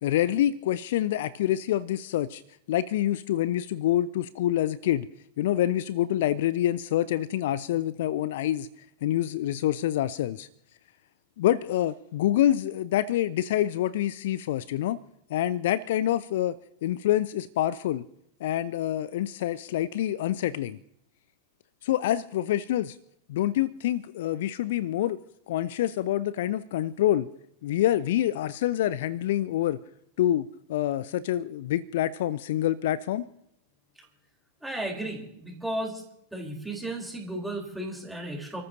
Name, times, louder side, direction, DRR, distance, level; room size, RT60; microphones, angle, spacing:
voice 1, 0.0-2.4 2.7-5.1 5.4-8.7 9.0-10.5 11.4-15.0 15.3-16.6 16.8-18.0 18.4-20.8 21.8-23.0 23.3-25.2 25.5-27.3 27.6-29.8 30.2-33.3, left 12 dB, 55° left, 20 dB, 0.4 m, -26 dB
voice 2, 34.6-36.0 36.3-38.6, right 1 dB, 5° right, 1 dB, 3.9 m, -34 dB
29.5 x 14.0 x 2.8 m, 0.75 s
figure-of-eight pair, 90°, 0 cm